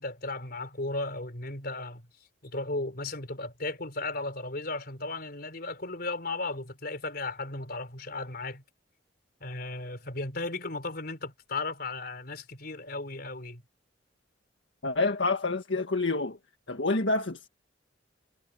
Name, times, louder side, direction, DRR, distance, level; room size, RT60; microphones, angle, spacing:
voice 1, 0.0-2.0 2.4-8.6 9.4-13.6, left 2 dB, 55° left, 4.3 m, -35 dB
voice 2, 14.8-16.4 16.7-17.5, left 3 dB, 70° left, 1.8 m, -27 dB
head